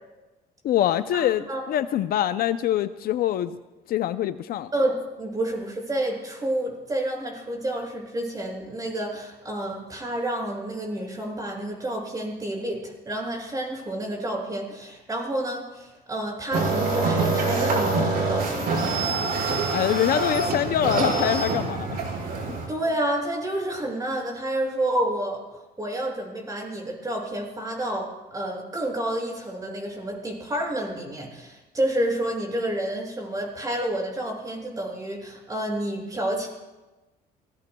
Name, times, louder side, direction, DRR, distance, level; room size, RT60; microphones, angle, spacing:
voice 1, 0.6-3.6 3.9-4.7 19.7-22.0 22.5-22.6, left 11 dB, 60° left, 12 dB, 0.5 m, -24 dB
voice 2, 4.7-19.1 22.7-25.4 25.8-36.5, right 1 dB, 20° right, -1 dB, 6.4 m, -29 dB
sound 1, 16.5-22.7, right 3 dB, 65° right, 5.3 m, -25 dB
27.5 x 19.5 x 2.3 m, 1.1 s
cardioid pair, 110°, 17 cm